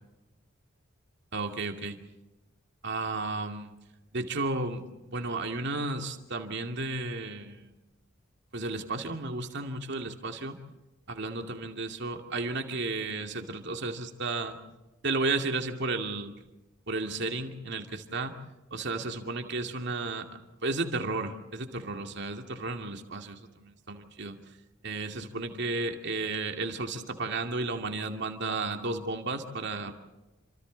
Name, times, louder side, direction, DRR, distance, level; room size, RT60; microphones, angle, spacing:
voice 1, 1.3-2.0 2.8-3.7 4.1-7.7 8.5-10.6 11.1-14.6 15.0-16.3 16.9-18.4 18.7-20.3 20.6-24.4 24.8-29.9, right 3 dB, 60° right, 4 dB, 2.5 m, -33 dB
29.0 x 26.5 x 4.1 m, 1.1 s
head